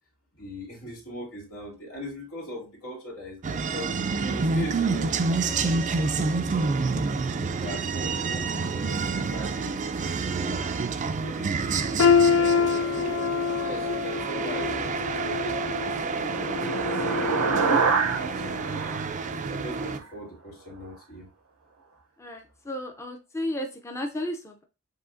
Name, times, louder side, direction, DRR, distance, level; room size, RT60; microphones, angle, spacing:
voice 1, 0.3-3.9 4.2-7.0 7.6-10.7 11.0-13.2 13.6-18.6 19.5-21.3, equal, 90° left, -2 dB, 2.5 m, -41 dB
sound 1, 3.4-20.0, right 4 dB, 35° right, 0.4 m, -29 dB
sound 2, 12.0-17.9 18.3-18.6 19.3-19.4, left 6 dB, 70° left, 0.5 m, -26 dB
sound 3, 15.4-20.0, right 5 dB, 85° right, 0.7 m, -28 dB
voice 2, 22.2-24.6, left 1 dB, 15° left, 3 dB, 0.5 m, -33 dB
7.3 x 2.8 x 2.6 m, 0.29 s
head